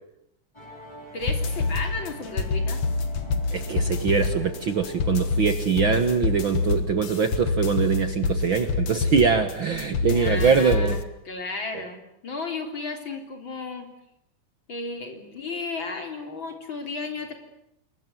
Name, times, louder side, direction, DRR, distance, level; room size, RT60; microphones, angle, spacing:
Musical instrument, 0.5-7.5, equal, 10° left, 5.4 m, -45 dB
voice 1, 1.1-2.8 10.1-13.9 14.7-17.4, left 3 dB, 40° left, 4 dB, 4.1 m, -34 dB
sound 1, 1.2-11.0, left 3 dB, 55° left, 2.3 m, -27 dB
voice 2, 3.5-11.0, right 6 dB, 50° right, 8 dB, 1.8 m, -23 dB
27.5 x 21.5 x 9.3 m, 0.80 s
omnidirectional pair, 3.4 m